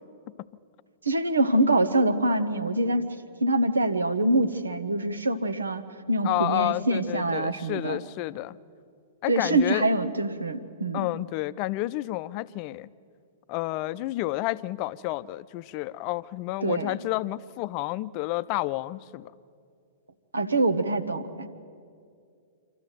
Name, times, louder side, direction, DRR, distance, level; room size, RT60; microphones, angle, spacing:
voice 1, 1.0-3.1 3.4-5.8 6.1-8.0 9.3-11.1 16.6-17.0 20.3-21.5, right 2 dB, 80° right, 1.3 m, -25 dB
voice 2, 6.2-8.6 9.2-9.8 10.9-12.9 13.5-19.3, left 17 dB, 40° left, 0.6 m, -30 dB
26.5 x 13.5 x 9.2 m
figure-of-eight pair, 105°, 0 cm